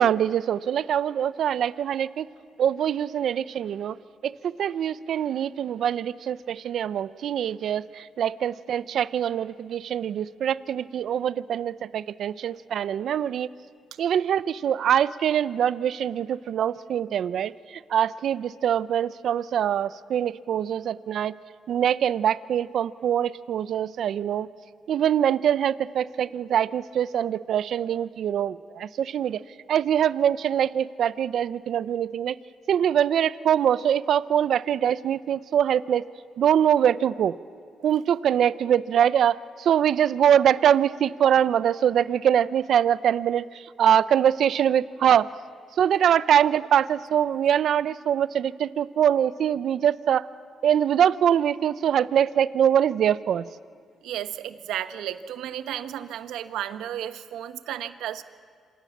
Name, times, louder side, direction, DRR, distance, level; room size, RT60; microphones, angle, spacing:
voice 1, 0.0-2.3 2.6-4.0 4.2-13.5 14.0-21.4 21.7-24.5 24.9-29.4 29.7-32.4 32.7-36.0 36.4-37.4 37.8-45.3 45.8-50.2 50.6-53.5, right 9 dB, 65° right, 17 dB, 0.7 m, -23 dB
voice 2, 54.0-58.2, right 11 dB, 85° right, 11 dB, 1.3 m, -33 dB
27.5 x 26.0 x 7.3 m, 2.2 s
cardioid pair, 90°, 0 cm